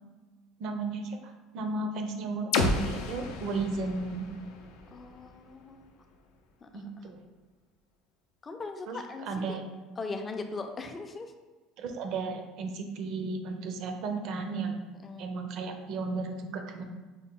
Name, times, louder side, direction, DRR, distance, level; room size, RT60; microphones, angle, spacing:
voice 1, 0.6-4.3 6.7-7.2 8.9-9.6 11.8-14.8 15.2-16.8, right 3 dB, 60° right, 5 dB, 0.6 m, -34 dB
sound 1, 2.5-6.4, left 3 dB, 85° left, 0.5 m, -33 dB
voice 2, 4.9-5.9 6.6-7.1 8.4-9.6 10.0-11.3 15.0-15.3, left 3 dB, 20° left, 5 dB, 0.4 m, -39 dB
5.1 x 2.1 x 3.7 m, 1.3 s
cardioid pair, 130°, 0 cm